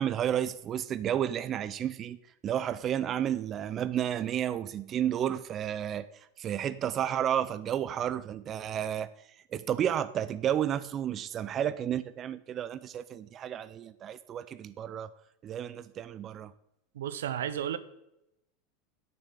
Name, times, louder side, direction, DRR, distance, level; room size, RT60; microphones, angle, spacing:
voice 1, 0.0-2.2 2.4-6.1 6.4-9.1 9.5-15.1 15.4-16.5, right 10 dB, 40° right, 0.5 m, -31 dB
voice 2, 16.9-17.8, right 10 dB, 80° right, 0.8 m, -32 dB
10.0 x 6.8 x 7.4 m
hypercardioid pair, 95°, 0 cm